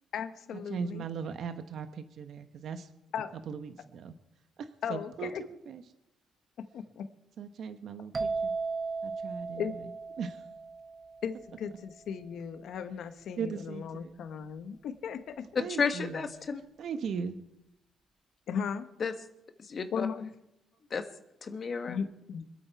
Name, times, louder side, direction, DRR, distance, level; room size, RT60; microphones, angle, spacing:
voice 1, 0.1-1.1 3.1-3.3 4.8-5.4 6.6-7.1 9.6-9.8 11.2-15.5 18.5-18.9 19.9-20.3 21.9-22.4, left 7 dB, 70° left, 9 dB, 1.1 m, -36 dB
voice 2, 0.7-2.9 3.5-4.1 4.6-5.8 7.4-8.5 9.0-9.6 10.2-10.4 13.4-14.1 15.6-16.2 16.8-17.4, right 6 dB, 65° right, 9 dB, 1.0 m, -38 dB
sound 1, 8.1-11.8, right 4 dB, 30° right, 1.0 m, -36 dB
voice 3, 15.8-16.6 19.0-19.1 19.6-20.1 20.9-21.1 21.4-22.0, left 5 dB, 45° left, 7 dB, 1.4 m, -32 dB
25.5 x 8.6 x 4.6 m, 0.85 s
cardioid pair, 90°, 0 cm